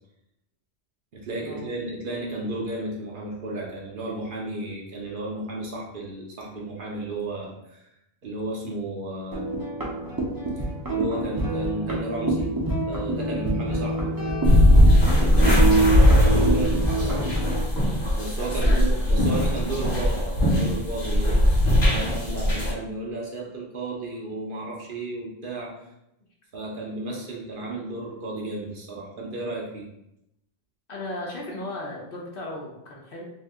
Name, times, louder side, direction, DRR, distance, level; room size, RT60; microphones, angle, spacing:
voice 1, 1.1-7.9 8.2-9.4 10.9-12.5 12.9-14.2 15.2-17.3 18.1-21.6 21.9-25.7 26.5-29.9, right 2 dB, 55° right, -2 dB, 0.8 m, -33 dB
sound 1, 9.3-17.6, right 2 dB, 25° right, 0.5 m, -26 dB
sound 2, 14.4-22.7, left 1 dB, 40° left, 1.1 m, -19 dB
voice 2, 18.4-19.1 21.9-22.0 30.9-33.2, left 2 dB, 60° left, -2 dB, 0.8 m, -36 dB
2.7 x 2.6 x 3.5 m, 0.83 s
omnidirectional pair, 1.1 m